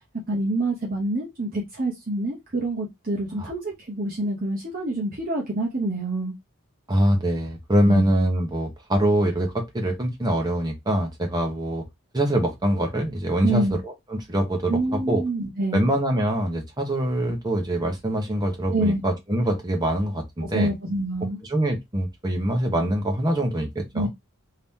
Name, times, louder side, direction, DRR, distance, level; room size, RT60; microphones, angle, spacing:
voice 1, 0.3-6.3 7.8-8.1 13.4-13.8 14.7-15.9 18.7-19.0 20.4-21.4 23.9-24.1, right 2 dB, 40° right, 0.8 m, -26 dB
voice 2, 6.9-11.8 12.1-14.8 15.1-15.2 15.7-20.7 21.5-24.1, right 1 dB, 20° right, 0.9 m, -24 dB
2.9 x 2.8 x 3.5 m
head